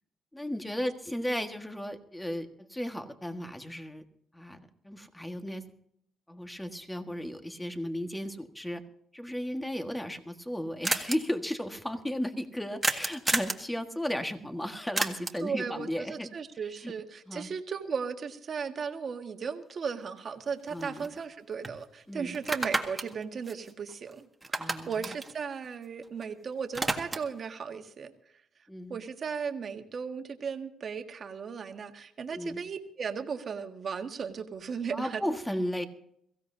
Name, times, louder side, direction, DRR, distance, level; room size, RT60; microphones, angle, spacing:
voice 1, 0.3-4.0 4.3-5.6 6.3-8.8 9.1-16.3 16.8-16.9 17.3-17.5 20.7-21.1 22.1-22.4 24.6-25.1 28.7-29.0 32.3-32.6 34.9-35.9, equal, 10° left, 6 dB, 1.6 m, -35 dB
sound 1, 10.2-10.3 10.5-10.6 10.8-11.2 12.8-13.7 15.0-15.5 19.7-19.8 20.2-21.3 21.6-21.8 22.3-24.1 24.4-26.2 26.5-27.4, right 2 dB, 15° right, 1.8 m, -32 dB
voice 2, 15.4-28.1 28.9-35.2, right 6 dB, 50° right, 5 dB, 1.6 m, -36 dB
22.5 x 16.0 x 2.8 m, 0.72 s
cardioid pair, 90°, 0 cm